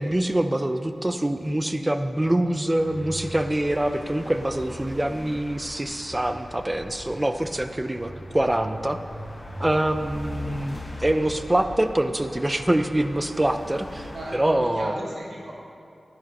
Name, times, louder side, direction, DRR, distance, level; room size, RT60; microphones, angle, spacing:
voice 1, 0.0-9.0 9.6-15.0, right 1 dB, 20° right, 8 dB, 0.6 m, -25 dB
sound 1, 2.7-14.3, equal, 40° left, 1.5 m, -39 dB
voice 2, 14.1-15.5, right 1 dB, 80° right, -4 dB, 1.5 m, -34 dB
11.0 x 11.0 x 3.1 m, 2.6 s
cardioid pair, 45°, 0 cm